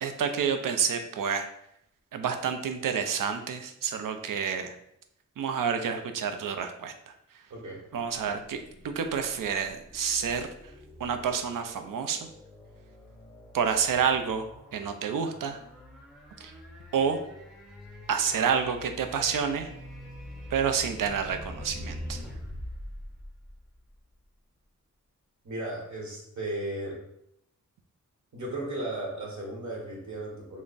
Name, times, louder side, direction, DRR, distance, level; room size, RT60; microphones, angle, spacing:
voice 1, 0.0-1.5 2.1-4.8 5.4-7.1 7.9-10.5 11.0-12.3 13.5-14.5 14.7-15.6 16.4-16.5 16.9-17.2 18.1-19.7 20.5-22.2, right 6 dB, 85° right, 7 dB, 0.5 m, -29 dB
voice 2, 7.5-7.8 25.4-27.0 28.3-30.6, right 1 dB, 65° right, -2 dB, 1.0 m, -35 dB
sound 1, 7.9-24.1, equal, ahead, 0.7 m, -45 dB
3.3 x 2.1 x 3.9 m, 0.77 s
wide cardioid pair, 130°, 31 cm